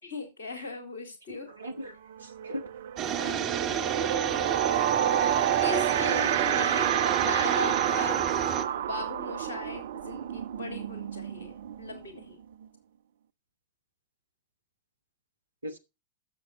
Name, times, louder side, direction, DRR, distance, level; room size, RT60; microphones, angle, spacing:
voice 1, 0.0-1.5 3.2-4.6 5.2-8.2 8.7-12.4, left 3 dB, 60° left, 5 dB, 3.9 m, -39 dB
voice 2, 1.3-2.6 6.7-6.9 15.6-15.8, equal, 80° right, 8 dB, 1.4 m, -39 dB
sound 1, 1.6-1.8 2.1-12.7, right 10 dB, 60° right, 0.4 m, -29 dB
sound 2, 3.0-8.6, right 8 dB, 35° right, 1.2 m, -30 dB
12.0 x 7.6 x 4.1 m, 0.27 s
figure-of-eight pair, 90°, 0 cm